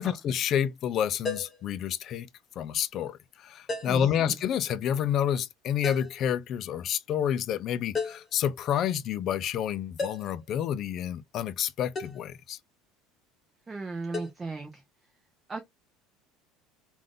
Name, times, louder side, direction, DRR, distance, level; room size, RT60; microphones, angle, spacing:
voice 1, 0.0-2.3 2.6-12.6, left 9 dB, 45° left, 0.5 m, -29 dB
sound 1, 1.2-1.6 3.7-4.1 5.8-6.2 7.9-8.3 10.0-10.4 11.9-12.2 14.1-14.3, left 4 dB, 25° left, 1.2 m, -33 dB
voice 2, 3.8-4.4 13.7-14.8 15.5-15.6, right 3 dB, 20° right, 0.7 m, -36 dB
3.3 x 2.5 x 3.7 m
supercardioid pair, 125°, 0 cm